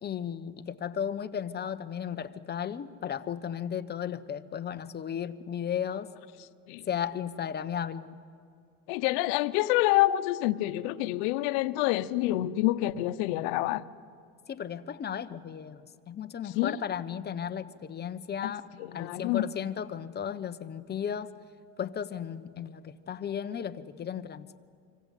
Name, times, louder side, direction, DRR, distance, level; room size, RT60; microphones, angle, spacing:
voice 1, 0.0-6.1 6.8-8.2 14.5-18.7 18.9-21.3 21.8-24.6, left 8 dB, 30° left, 11 dB, 1.1 m, -35 dB
voice 2, 8.9-13.8 16.6-16.8 18.4-18.5 18.8-19.5, left 16 dB, 90° left, 11 dB, 0.9 m, -27 dB
26.0 x 25.5 x 8.4 m, 2.3 s
cardioid pair, 125°, 33 cm